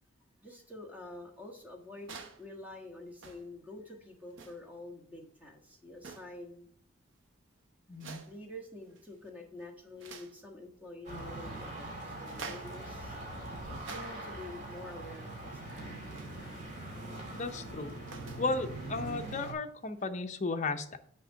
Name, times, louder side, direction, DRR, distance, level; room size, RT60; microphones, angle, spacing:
voice 1, 0.4-6.7 8.3-13.2 13.9-15.9, left 1 dB, 10° right, 1 dB, 1.4 m, -47 dB
sound 1, 1.9-2.5 3.1-3.6 4.3-4.7 6.0-6.4 7.9-8.4 8.9-9.3 9.6-10.4 12.2-12.8 13.4-14.4 16.1-16.4 17.8-18.5 20.0-20.1, right 4 dB, 70° right, 0.9 m, -48 dB
voice 2, 7.9-8.2 17.3-17.9 18.4-21.0, left 3 dB, 35° left, 6 dB, 0.6 m, -34 dB
sound 2, 11.0-19.5, right 2 dB, 35° right, 2.1 m, -42 dB
6.5 x 5.1 x 5.5 m, 0.66 s
head